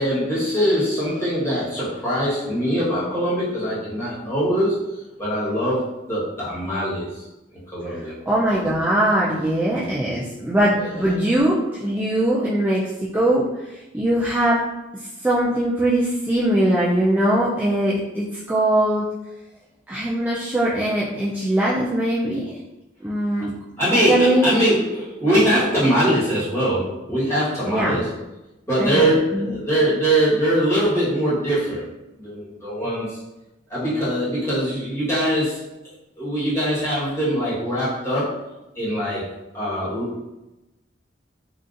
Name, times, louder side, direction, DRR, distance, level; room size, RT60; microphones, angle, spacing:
voice 1, 0.0-7.2 7.7-8.1 10.7-11.0 23.8-28.1 28.7-31.9 32.2-33.2 33.7-35.7 36.2-38.4 38.7-39.3 39.5-40.1, equal, 15° left, -10 dB, 1.3 m, -22 dB
voice 2, 7.8-14.6 15.2-19.1 19.9-22.6 23.0-23.5 24.1-24.5 27.6-28.0 28.8-29.5, right 1 dB, 10° right, -7 dB, 0.3 m, -21 dB
3.8 x 2.4 x 2.5 m, 0.97 s
head